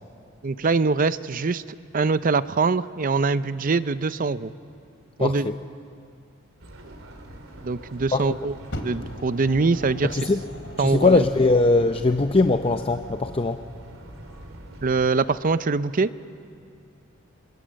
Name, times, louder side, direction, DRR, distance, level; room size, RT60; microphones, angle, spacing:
voice 1, 0.4-1.6 1.9-4.5 5.2-5.5 7.6-8.5 8.8-10.2 10.8-11.2 14.8-16.1, right 4 dB, 45° right, 14 dB, 0.6 m, -23 dB
voice 2, 5.2-5.6 8.1-8.2 10.1-10.4 10.8-13.7, left 3 dB, 25° left, 7 dB, 0.6 m, -20 dB
sound 1, 6.6-15.1, right 1 dB, 90° right, 3.0 m, -43 dB
Fire, 8.7-11.5 12.4-12.5, left 1 dB, 65° left, 2.8 m, -39 dB
27.5 x 26.0 x 7.6 m, 2.4 s
head